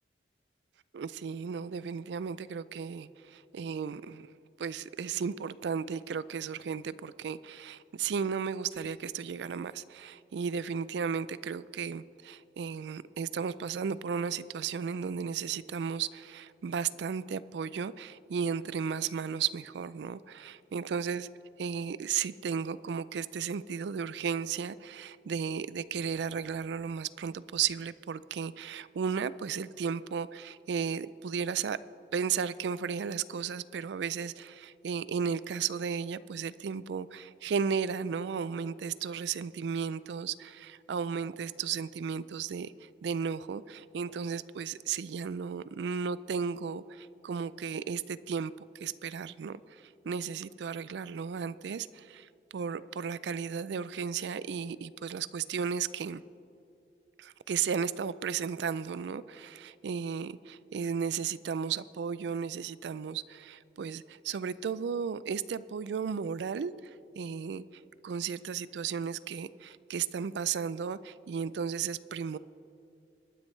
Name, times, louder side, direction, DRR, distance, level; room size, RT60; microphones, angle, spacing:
voice 1, 0.9-4.3 4.6-21.3 21.6-31.8 32.1-56.2 57.2-72.4, right 6 dB, 75° right, 17 dB, 0.3 m, -34 dB
22.0 x 9.6 x 3.2 m, 2.7 s
head